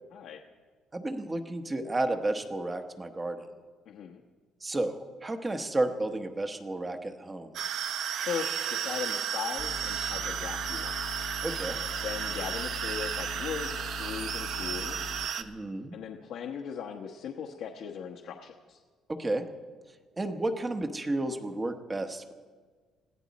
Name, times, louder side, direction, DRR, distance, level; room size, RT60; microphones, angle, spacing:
voice 1, 0.9-3.4 4.6-7.5 11.4-11.8 15.4-16.0 19.2-19.5 20.2-22.3, right 2 dB, 15° right, 6 dB, 1.0 m, -32 dB
voice 2, 3.9-4.2 8.2-11.0 12.0-15.1 15.9-18.8, left 7 dB, 70° left, 2 dB, 1.1 m, -38 dB
sound 1, 7.5-15.4, right 8 dB, 60° right, 0.8 m, -33 dB
sound 2, 9.6-15.3, left 7 dB, 45° left, 0.8 m, -42 dB
21.0 x 15.0 x 4.2 m, 1.5 s
cardioid pair, 155°, 0 cm